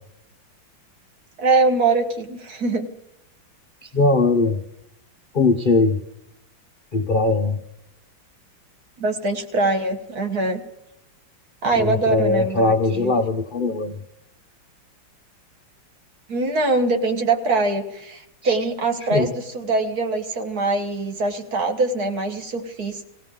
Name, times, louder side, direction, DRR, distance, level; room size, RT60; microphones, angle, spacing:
voice 1, 1.4-2.9 9.0-10.6 11.6-13.1 16.3-23.0, right 3 dB, 55° right, 5 dB, 1.8 m, -23 dB
voice 2, 3.8-4.6 5.3-6.0 6.9-7.6 11.7-14.0 18.4-18.6 19.1-19.3, left 3 dB, 75° left, 4 dB, 0.4 m, -20 dB
19.0 x 16.5 x 3.7 m, 0.84 s
omnidirectional pair, 2.1 m